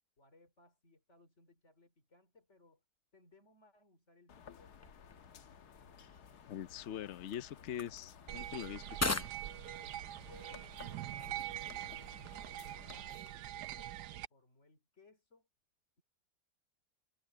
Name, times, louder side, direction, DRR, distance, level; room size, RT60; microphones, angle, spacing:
voice 1, 0.2-2.8 3.1-4.9 10.2-12.3 12.6-15.5, left 3 dB, 45° left, 4.2 m, -65 dB
sound 1, 4.3-13.0, left 7 dB, 80° left, 1.7 m, -57 dB
sound 2, 4.7-13.9, left 2 dB, 20° left, 0.4 m, -45 dB
voice 2, 6.5-9.3, left 10 dB, 60° left, 0.8 m, -43 dB
sound 3, 8.3-14.3, right 13 dB, 80° right, 1.2 m, -44 dB
omnidirectional pair, 1.7 m